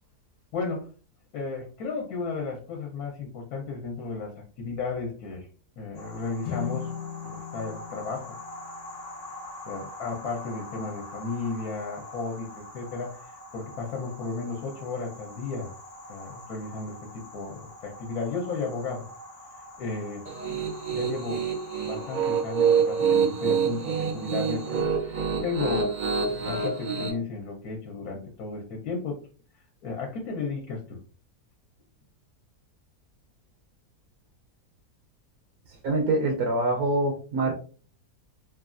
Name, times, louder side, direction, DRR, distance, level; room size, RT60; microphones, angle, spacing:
voice 1, 0.5-0.9 1.3-5.5 5.8-6.9 7.2-8.4 9.7-15.7 16.1-19.1 19.8-20.6 20.9-21.4 21.8-25.9 26.3-29.2 29.8-31.0, left 4 dB, 70° left, 0 dB, 1.1 m, -34 dB
sound 1, 5.9-24.8, left 1 dB, 50° left, 0.4 m, -44 dB
sound 2, 6.4-9.7, left 8 dB, 90° left, 1.1 m, -39 dB
Piano, 20.3-27.1, right 6 dB, 60° right, 0.5 m, -26 dB
voice 2, 35.8-37.5, right 2 dB, 75° right, 2 dB, 1.1 m, -25 dB
3.2 x 2.3 x 2.4 m, 0.39 s
omnidirectional pair, 1.7 m